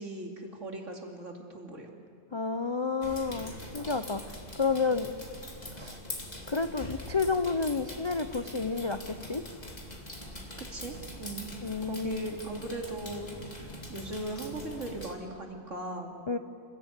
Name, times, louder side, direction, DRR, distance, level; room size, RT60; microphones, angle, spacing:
voice 1, 0.0-1.9 10.7-11.5 11.9-13.3 13.5-16.1, right 2 dB, 60° right, 1 dB, 2.9 m, -39 dB
voice 2, 2.3-5.1 5.7-6.0 6.5-9.4 11.6-12.3 16.3-16.4, left 4 dB, 50° left, 9 dB, 0.3 m, -30 dB
sound 1, 3.0-15.1, left 1 dB, 30° left, 2.5 m, -43 dB
28.5 x 16.5 x 8.2 m, 2.5 s
omnidirectional pair, 1.4 m